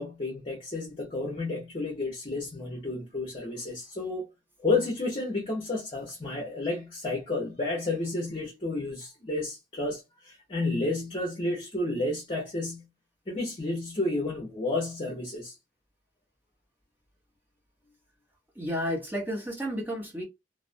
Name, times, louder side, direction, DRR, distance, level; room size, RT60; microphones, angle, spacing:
voice 1, 0.0-4.3 4.6-12.9 13.3-15.5, left 2 dB, 35° left, 0.8 m, -31 dB
voice 2, 18.6-20.2, equal, 10° right, 0.9 m, -32 dB
2.4 x 2.1 x 2.4 m
head